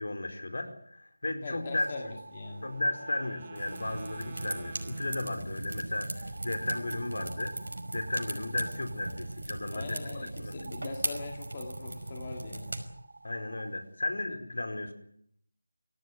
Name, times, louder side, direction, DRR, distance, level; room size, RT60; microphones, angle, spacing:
voice 1, 0.0-1.9 2.6-7.6 7.9-10.5 13.2-14.9, left 2 dB, 60° left, 6 dB, 4.8 m, -34 dB
voice 2, 1.4-2.6 9.7-12.8, left 3 dB, 20° left, 2 dB, 2.1 m, -41 dB
sound 1, 1.6-5.5 6.1-9.4 10.5-13.7, right 2 dB, 50° right, 2.0 m, -50 dB
Wind instrument woodwind instrument, 2.3-6.0, right 5 dB, 15° right, 1.2 m, -51 dB
sound 2, 3.5-12.9, right 2 dB, 80° right, 5.4 m, -38 dB
25.5 x 16.5 x 9.6 m, 0.69 s
figure-of-eight pair, 180°, 0 cm